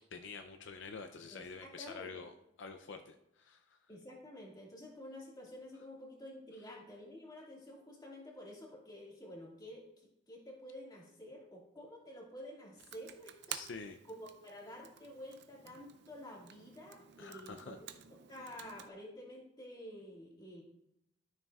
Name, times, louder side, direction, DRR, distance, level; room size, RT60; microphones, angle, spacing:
voice 1, 0.1-2.3 2.6-3.8 13.5-14.0 17.2-17.8, left 4 dB, 65° left, 7 dB, 0.5 m, -47 dB
voice 2, 1.3-2.3 3.9-13.6 14.0-17.8 18.3-20.6, equal, 20° left, -3 dB, 2.1 m, -50 dB
Computer keyboard, 12.8-18.9, right 10 dB, 60° right, 0.5 m, -51 dB
12.5 x 6.7 x 2.4 m, 0.80 s
head